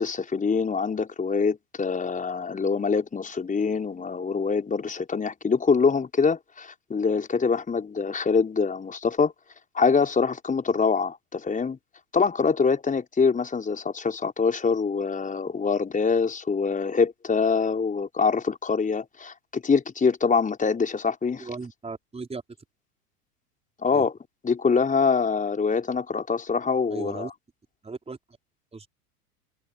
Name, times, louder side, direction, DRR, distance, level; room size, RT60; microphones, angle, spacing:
voice 1, 0.0-9.3 9.7-11.8 12.1-21.5 23.8-24.1 24.4-27.3, left 5 dB, 15° left, 5.3 m, -24 dB
voice 2, 21.4-22.4 23.9-24.1 26.9-27.3 27.8-28.2 28.7-28.9, right 4 dB, 15° right, 4.9 m, -36 dB
figure-of-eight pair, 90°, 47 cm